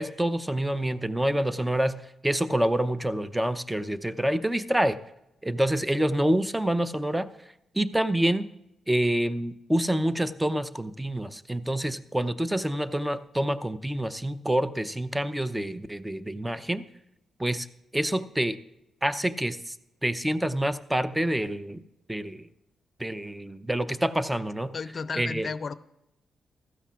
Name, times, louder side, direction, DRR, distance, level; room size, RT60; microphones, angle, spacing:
voice 1, 0.0-5.0 5.4-7.3 7.7-8.5 8.9-16.8 17.4-17.7 17.9-18.6 19.0-19.8 20.0-21.8 22.1-22.5 23.0-24.7 25.1-25.5, right 1 dB, 10° right, 15 dB, 0.6 m, -27 dB
voice 2, 24.7-25.7, left 5 dB, 50° left, 15 dB, 0.5 m, -33 dB
15.5 x 12.5 x 2.5 m, 0.88 s
hypercardioid pair, 45°, 0 cm